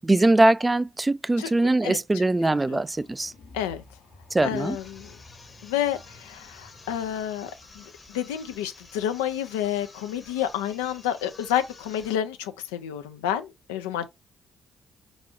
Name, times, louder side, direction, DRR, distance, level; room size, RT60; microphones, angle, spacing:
voice 1, 0.0-3.3 4.3-4.8, right 2 dB, 20° right, 0.3 m, -22 dB
voice 2, 1.8-2.2 2.7-2.8 3.5-3.8 4.4-5.2 5.6-7.5 7.8-14.1, left 10 dB, 90° left, 0.4 m, -30 dB
sound 1, 2.7-7.8, left 2 dB, 75° left, 1.0 m, -52 dB
sound 2, 4.5-12.3, left 3 dB, 35° left, 0.9 m, -50 dB
4.1 x 2.3 x 2.7 m
hypercardioid pair, 50°, 0 cm